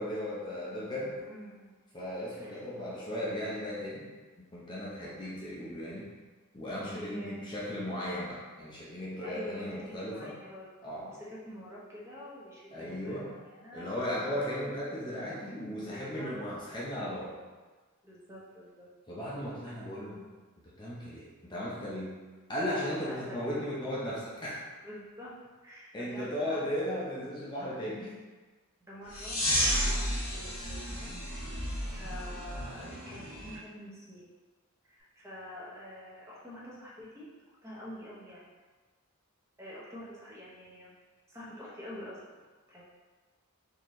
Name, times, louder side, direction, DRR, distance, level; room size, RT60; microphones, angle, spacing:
voice 1, 0.0-1.2 1.9-4.1 4.4-6.1 6.5-10.3 10.8-11.2 12.7-13.3 13.7-17.4 19.1-20.3 20.8-22.2 22.5-24.6 25.9-28.1, equal, 20° left, -7 dB, 0.7 m, -36 dB
voice 2, 1.2-1.7 2.4-2.6 5.2-5.5 6.8-7.5 9.2-10.7 11.0-13.9 15.9-16.3 18.0-18.9 19.7-19.8 22.7-23.6 24.8-26.7 28.8-31.1 31.6-34.3 34.8-37.3 37.6-38.4 39.6-40.9 41.3-42.2 42.7-42.8, left 1 dB, 15° right, -7 dB, 0.8 m, -47 dB
sound 1, 29.1-33.5, equal, 85° left, 1.2 m, -32 dB
4.3 x 2.7 x 3.1 m, 1.3 s
head